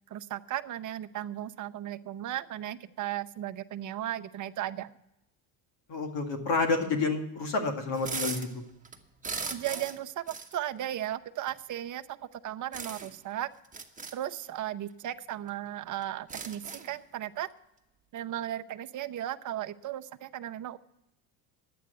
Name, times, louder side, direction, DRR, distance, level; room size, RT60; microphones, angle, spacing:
voice 1, 0.1-4.9 9.5-13.5 14.1-17.5 18.1-20.8, right 12 dB, 40° right, 9 dB, 0.7 m, -36 dB
voice 2, 5.9-8.5, left 3 dB, 60° left, 4 dB, 2.3 m, -29 dB
sound 1, 7.9-8.5 8.8-10.0 10.3-10.5 11.5-11.6 12.7-13.2 13.6-14.1 15.1-15.2 15.5-15.6 16.0-17.0, right 4 dB, 15° right, 1.3 m, -38 dB
11.0 x 8.5 x 8.1 m, 0.87 s
supercardioid pair, 85°, 49 cm